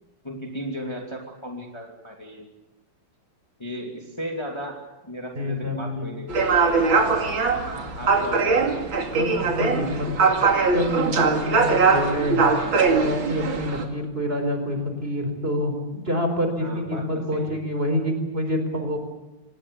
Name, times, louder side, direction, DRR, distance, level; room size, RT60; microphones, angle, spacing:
voice 1, 0.2-2.5 3.6-4.8 5.0-7.4 8.0-8.9 16.6-17.6, equal, 15° left, 1 dB, 2.6 m, -36 dB
voice 2, 5.4-6.1 9.1-10.1 10.7-12.5 12.9-19.0, equal, 25° right, 6 dB, 4.6 m, -27 dB
sound 1, 6.3-13.9, right 4 dB, 70° right, 3.1 m, -21 dB
26.0 x 19.5 x 8.4 m, 1.0 s
omnidirectional pair, 2.2 m